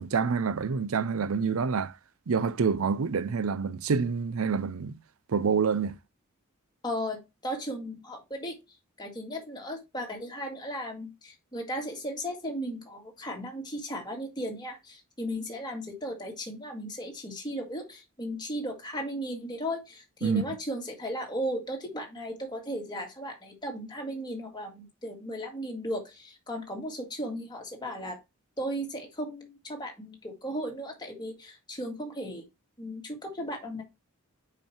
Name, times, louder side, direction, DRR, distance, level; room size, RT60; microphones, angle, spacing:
voice 1, 0.0-1.9 2.3-5.0 5.3-6.0 20.2-20.4, right 5 dB, 70° right, 0.5 m, -27 dB
voice 2, 6.8-8.6 9.0-28.2 28.6-32.4 32.8-33.8, equal, 20° left, 1.9 m, -36 dB
5.4 x 5.2 x 4.4 m
head